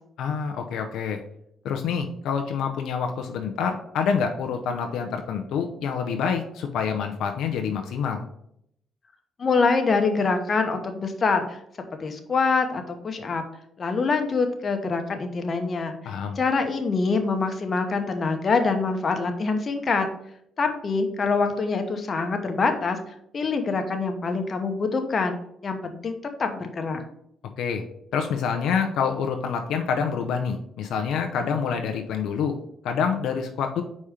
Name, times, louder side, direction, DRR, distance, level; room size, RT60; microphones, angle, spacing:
voice 1, 0.2-1.2 1.6-8.3 16.0-16.4 27.6-27.8 28.1-32.6 32.8-33.8, left 6 dB, 80° left, 4 dB, 0.6 m, -27 dB
voice 2, 9.4-11.6 12.0-13.4 13.8-16.0 16.4-20.1 20.6-23.0 23.3-25.4 25.6-26.1 26.4-27.0, left 4 dB, 40° left, 5 dB, 1.0 m, -25 dB
5.0 x 4.2 x 4.9 m, 0.73 s
cardioid pair, 90°, 0 cm